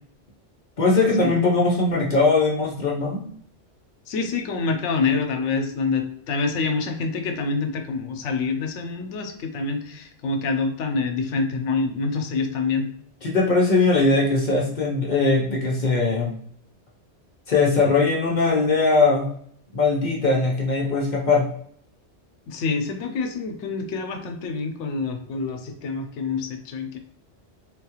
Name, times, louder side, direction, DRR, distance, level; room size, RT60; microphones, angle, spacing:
voice 1, 0.8-3.2 13.2-16.3 17.5-19.3 19.7-21.5, left 3 dB, 45° left, -2 dB, 0.7 m, -20 dB
voice 2, 4.1-12.9 22.5-27.0, left 4 dB, 80° left, 5 dB, 0.9 m, -26 dB
3.8 x 2.3 x 2.9 m, 0.65 s
omnidirectional pair, 1.2 m